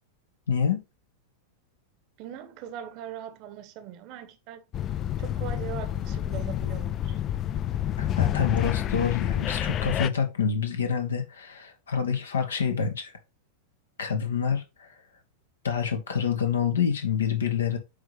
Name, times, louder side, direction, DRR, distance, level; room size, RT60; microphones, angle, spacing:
voice 1, 0.5-0.8 8.0-13.1 14.0-14.9 15.6-17.8, left 7 dB, 70° left, 1.2 m, -27 dB
voice 2, 2.2-4.6 5.2-7.2, right 10 dB, 40° right, 1.0 m, -40 dB
sound 1, 4.7-10.1, left 11 dB, 30° left, 0.4 m, -28 dB
8.7 x 3.5 x 3.2 m
figure-of-eight pair, 90°, 0 cm